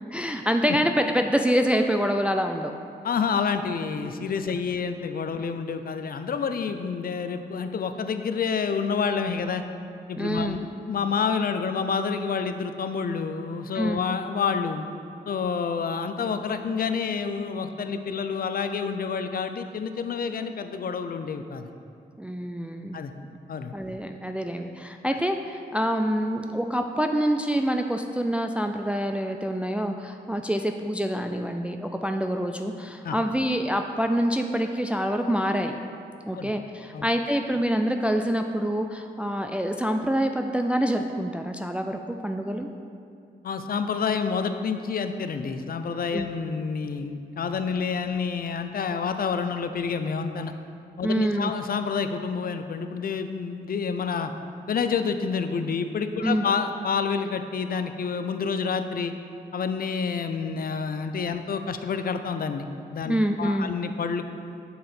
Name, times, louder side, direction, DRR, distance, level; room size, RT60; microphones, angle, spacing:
voice 1, 0.1-2.7 10.2-10.6 13.7-14.0 22.2-23.0 23.7-35.8 36.3-42.7 46.1-46.3 51.0-51.5 56.2-56.5 63.1-63.7, equal, 5° right, 5 dB, 0.3 m, -26 dB
voice 2, 3.0-9.6 10.1-14.8 15.3-21.7 22.9-23.1 23.5-23.7 33.0-33.2 36.3-36.5 36.9-37.1 43.4-50.5 51.0-54.3 54.7-59.1 59.5-64.3, left 5 dB, 55° left, 8 dB, 0.5 m, -28 dB
6.9 x 3.8 x 4.2 m, 2.5 s
supercardioid pair, 40°, 19 cm